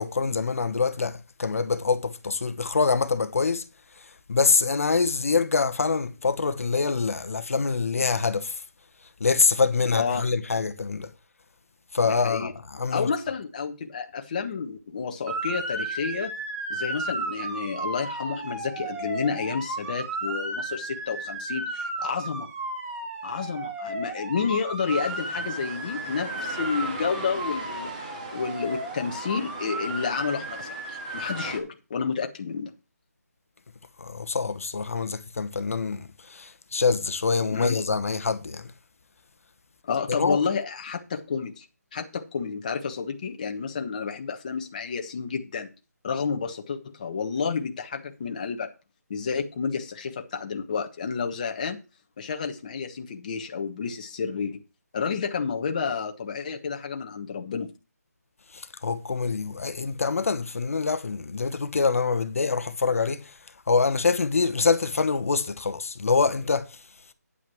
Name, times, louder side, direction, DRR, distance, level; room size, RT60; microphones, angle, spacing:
voice 1, 0.0-3.6 4.3-8.6 9.2-11.1 11.9-13.1 34.0-38.7 40.1-40.4 58.5-63.3 63.7-66.8, left 4 dB, 55° left, 1.2 m, -25 dB
voice 2, 9.9-10.2 12.0-12.5 12.9-16.3 16.7-22.5 23.2-27.9 28.3-32.7 37.5-37.8 39.8-41.6 41.9-45.7 46.0-48.7 49.1-51.8 52.2-54.6 54.9-57.7, left 5 dB, 25° left, 1.2 m, -30 dB
Motor vehicle (road) / Siren, 15.3-31.5, right 2 dB, 10° right, 1.4 m, -34 dB
sound 1, 24.9-31.6, right 2 dB, 30° right, 2.8 m, -39 dB
9.7 x 5.9 x 6.1 m
hypercardioid pair, 175°, 9 cm